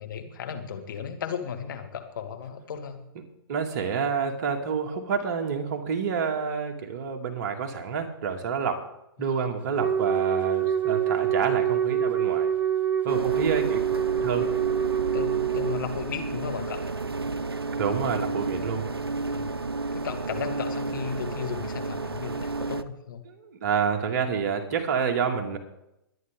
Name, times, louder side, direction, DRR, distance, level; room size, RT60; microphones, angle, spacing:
voice 1, 0.0-3.0 9.2-9.5 10.2-10.3 14.1-14.3 15.1-16.9 19.3-19.6 19.9-23.2, left 7 dB, 55° left, 6 dB, 1.9 m, -35 dB
voice 2, 3.5-8.8 9.2-12.5 13.0-13.8 14.2-14.4 17.8-18.9 23.3-25.6, right 6 dB, 45° right, 4 dB, 2.1 m, -28 dB
Wind instrument woodwind instrument, 9.8-15.8, right 9 dB, 10° right, 0.6 m, -25 dB
sound 1, 13.1-22.8, right 3 dB, 90° right, 0.7 m, -32 dB
21.5 x 9.4 x 3.7 m, 0.85 s
figure-of-eight pair, 120°, 12 cm